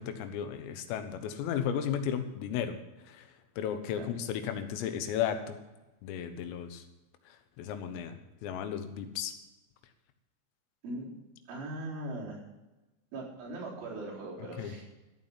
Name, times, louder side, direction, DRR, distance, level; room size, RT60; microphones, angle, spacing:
voice 1, 0.0-2.8 3.1-3.3 3.6-5.6 6.0-6.8 7.3-9.3 14.6-14.7, left 9 dB, 90° left, 8 dB, 3.9 m, -34 dB
voice 2, 11.5-12.5 13.1-14.8, right 2 dB, 70° right, -6 dB, 6.5 m, -40 dB
13.5 x 9.6 x 5.7 m, 1.1 s
omnidirectional pair, 5.8 m